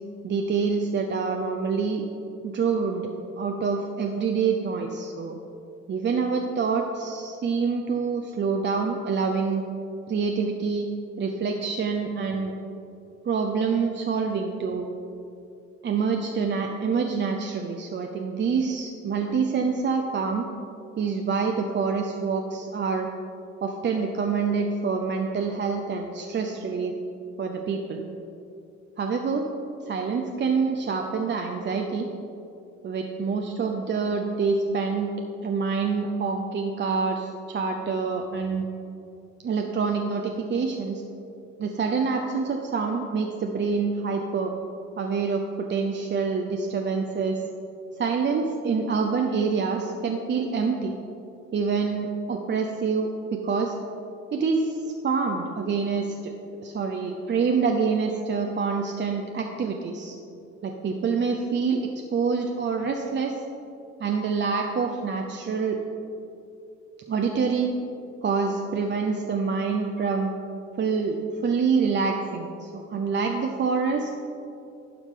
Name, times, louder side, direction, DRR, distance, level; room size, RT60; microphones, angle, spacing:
voice 1, 0.2-2.0 2.4-3.1 3.4-5.3 5.9-9.6 10.1-10.9 11.2-12.5 13.3-14.9 15.8-20.5 21.0-23.1 23.6-26.9 27.4-28.0 29.0-29.5 29.8-32.1 32.8-35.1 35.4-38.6 39.4-41.0 41.6-44.5 45.0-47.4 48.0-51.0 51.5-53.7 54.3-56.3 56.6-60.2 60.6-63.4 64.0-65.8 67.1-67.7 68.2-70.3 70.8-71.2 71.4-74.1, right 5 dB, 40° right, 3 dB, 0.5 m, -26 dB
11.5 x 4.8 x 3.7 m, 2.7 s
cardioid pair, 90°, 30 cm